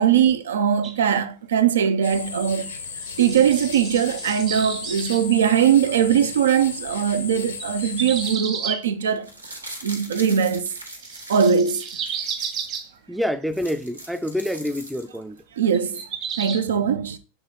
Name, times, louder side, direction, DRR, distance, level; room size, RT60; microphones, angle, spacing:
voice 1, 0.0-2.7 3.2-9.3 9.8-10.7 11.3-11.9 15.6-16.0 16.4-17.2, right 8 dB, 65° right, 0.6 m, -20 dB
sound 1, 0.8-1.0 2.6-2.8 3.0-5.2 7.6-8.8 11.0-12.9 15.7-16.6, right 7 dB, 35° right, 1.1 m, -32 dB
sound 2, 2.0-8.4, left 5 dB, 70° left, 0.8 m, -35 dB
sound 3, 9.1-12.8 13.2-13.3 13.5-15.4 15.7-15.8, right 1 dB, 85° right, 1.3 m, -40 dB
voice 2, 13.1-15.4, equal, ahead, 0.5 m, -27 dB
6.9 x 3.6 x 3.8 m
figure-of-eight pair, 90°, 0 cm